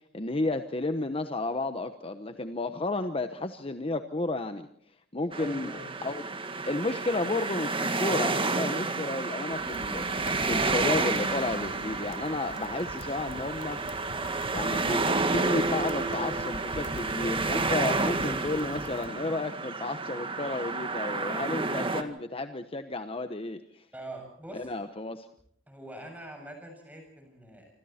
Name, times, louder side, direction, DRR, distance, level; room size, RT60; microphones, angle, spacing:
voice 1, 0.1-4.7 5.1-5.8 6.0-6.2 6.7-13.8 14.5-23.8 24.5-25.3, left 2 dB, 30° left, 8 dB, 1.1 m, -32 dB
sound 1, 5.3-22.0, right 3 dB, 30° right, 1.9 m, -30 dB
voice 2, 5.4-5.9 23.9-24.7 25.7-27.7, right 1 dB, 10° right, 4 dB, 7.4 m, -43 dB
sound 2, 9.5-19.1, left 2 dB, 70° left, 1.1 m, -46 dB
27.0 x 26.5 x 4.4 m, 0.65 s
head